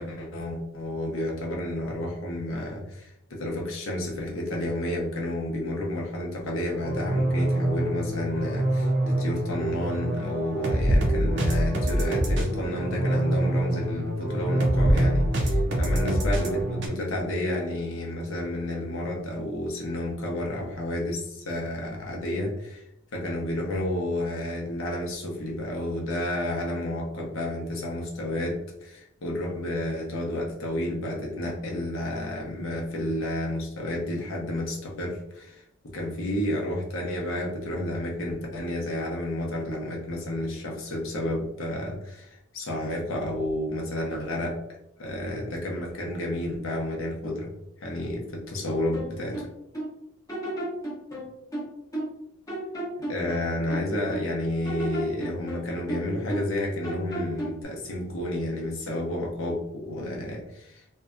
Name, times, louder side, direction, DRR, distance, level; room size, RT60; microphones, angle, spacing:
voice 1, 0.0-22.8 23.1-44.6 45.0-47.5 47.8-49.5 53.1-60.8, left 1 dB, 75° left, -1 dB, 0.7 m, -31 dB
sound 1, 6.7-16.9, right 1 dB, 60° right, 0.5 m, -25 dB
sound 2, 48.9-49.9 50.3-52.2 52.5-54.3 54.6-56.6 56.8-57.6, right 1 dB, 15° left, 0.7 m, -34 dB
2.6 x 2.2 x 2.4 m, 0.81 s
head